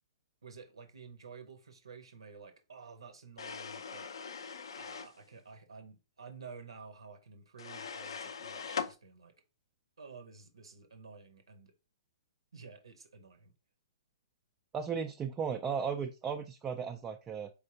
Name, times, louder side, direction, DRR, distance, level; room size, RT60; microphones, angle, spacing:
voice 1, 0.4-4.1 4.8-9.3 10.0-11.7 12.5-13.5, right 5 dB, 80° right, 0.7 m, -51 dB
sound 1, 3.4-5.2 7.6-8.9, left 6 dB, 75° left, 0.4 m, -41 dB
voice 2, 14.7-17.5, right 6 dB, 15° right, 0.3 m, -35 dB
4.2 x 3.3 x 2.7 m
hypercardioid pair, 125°, 3 cm